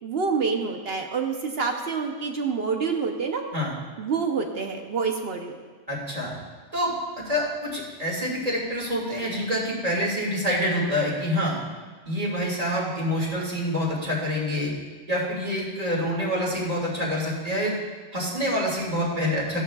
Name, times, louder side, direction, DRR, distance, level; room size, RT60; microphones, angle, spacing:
voice 1, 0.0-3.4 4.0-5.6, right 5 dB, 60° right, 3 dB, 1.0 m, -27 dB
voice 2, 5.9-6.3 6.7-6.9 7.2-11.6 12.0-14.7 15.1-17.8 18.1-19.6, equal, 30° right, -4 dB, 2.3 m, -26 dB
16.0 x 11.5 x 2.3 m, 1.4 s
omnidirectional pair, 1.3 m